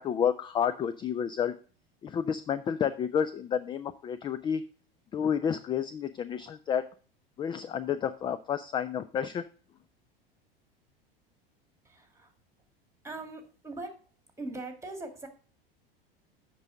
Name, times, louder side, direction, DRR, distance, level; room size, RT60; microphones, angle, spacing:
voice 1, 0.0-1.5 2.0-4.6 5.1-6.9 7.4-9.4, left 8 dB, 15° left, 13 dB, 0.3 m, -30 dB
voice 2, 11.8-12.3 13.0-14.0 14.4-15.3, right 2 dB, 10° right, 7 dB, 1.9 m, -41 dB
8.1 x 5.4 x 4.8 m, 0.38 s
figure-of-eight pair, 80°, 29 cm